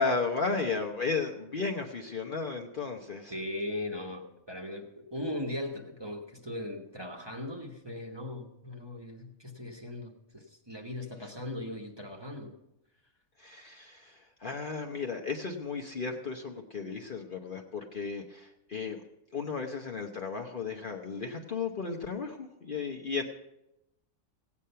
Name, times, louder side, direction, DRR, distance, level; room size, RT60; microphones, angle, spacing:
voice 1, 0.0-3.3 13.4-19.0 19.3-23.2, left 4 dB, 45° left, 2 dB, 0.9 m, -34 dB
voice 2, 3.3-12.5, left 1 dB, 20° right, 1 dB, 1.2 m, -39 dB
16.5 x 8.5 x 5.6 m, 0.89 s
omnidirectional pair, 1.4 m